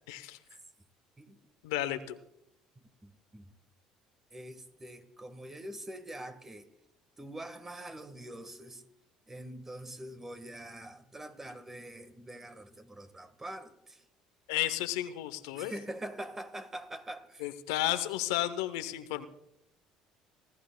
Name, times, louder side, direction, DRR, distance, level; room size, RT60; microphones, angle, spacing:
voice 1, 0.1-0.4 1.6-2.2 14.5-15.7 17.4-19.2, left 14 dB, 85° left, 11 dB, 0.7 m, -32 dB
voice 2, 3.0-3.5 4.3-6.7 7.2-8.8 9.3-14.0 15.5-17.5, right 1 dB, 20° right, 11 dB, 1.4 m, -44 dB
30.0 x 11.5 x 2.2 m, 0.84 s
supercardioid pair, 80°, 2 cm